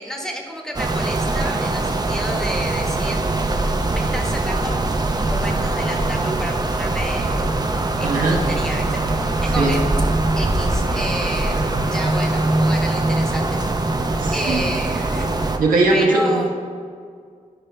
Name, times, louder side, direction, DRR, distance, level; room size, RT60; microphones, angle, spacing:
voice 1, 0.0-3.2 3.8-4.8 5.1-7.4 8.0-9.0 9.4-9.9 10.3-14.1 14.3-15.3 15.9-16.5, equal, 5° left, 0 dB, 1.4 m, -30 dB
sound 1, 0.8-15.6, right 2 dB, 30° right, 0.7 m, -22 dB
voice 2, 8.0-8.4 9.6-9.7 14.2-14.6 15.6-16.6, right 2 dB, 90° right, -2 dB, 1.1 m, -19 dB
12.0 x 5.0 x 3.3 m, 2.1 s
wide cardioid pair, 85°, 14 cm